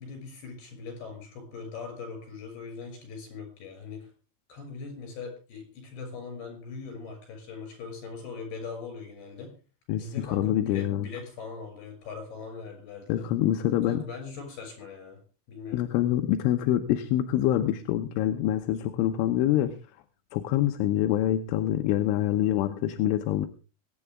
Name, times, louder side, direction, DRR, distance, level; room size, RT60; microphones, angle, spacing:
voice 1, 0.0-4.1 4.5-9.5 10.0-13.3 13.8-15.2 15.5-15.8, left 5 dB, 55° left, 4 dB, 8.1 m, -40 dB
voice 2, 9.9-11.1 13.1-14.0 15.7-19.8 20.3-23.5, left 12 dB, 85° left, 6 dB, 3.4 m, -25 dB
23.5 x 10.0 x 3.6 m, 0.35 s
omnidirectional pair, 5.5 m